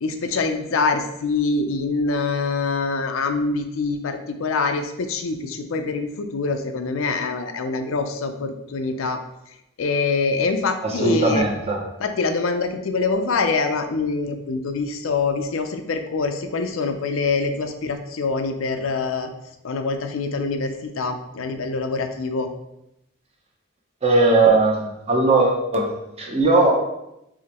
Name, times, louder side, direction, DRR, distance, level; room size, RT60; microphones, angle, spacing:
voice 1, 0.0-9.2 9.8-11.5 12.0-19.3 19.6-22.5, left 4 dB, 90° left, 6 dB, 0.5 m, -24 dB
voice 2, 10.8-11.8 24.0-26.7, right 2 dB, 30° right, 0 dB, 0.8 m, -19 dB
4.8 x 3.1 x 2.9 m, 0.85 s
head